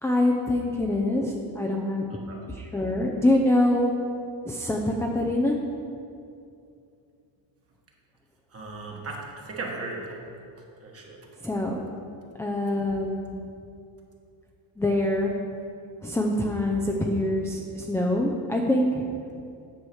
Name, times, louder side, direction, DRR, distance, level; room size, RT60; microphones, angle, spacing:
voice 1, 0.0-2.0 2.5-3.9 4.5-5.6 11.4-11.8 12.4-13.4 14.8-15.3 16.0-19.0, left 1 dB, 5° left, -1 dB, 0.4 m, -25 dB
voice 2, 2.1-2.4 8.5-10.2 10.8-11.2, right 3 dB, 30° right, -1 dB, 1.3 m, -37 dB
9.6 x 4.7 x 7.0 m, 2.5 s
cardioid pair, 165°, 44 cm